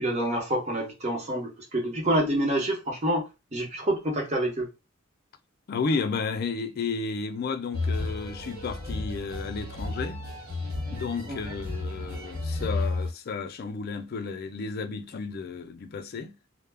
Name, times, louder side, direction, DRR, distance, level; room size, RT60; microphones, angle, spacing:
voice 1, 0.0-3.3 3.5-4.7 11.3-11.4, right 1 dB, 30° right, 0.8 m, -27 dB
voice 2, 5.7-10.2 10.9-16.3, left 4 dB, 45° left, 0.3 m, -32 dB
sound 1, 7.7-13.1, left 2 dB, 90° right, 1.1 m, -32 dB
2.2 x 2.0 x 3.3 m
head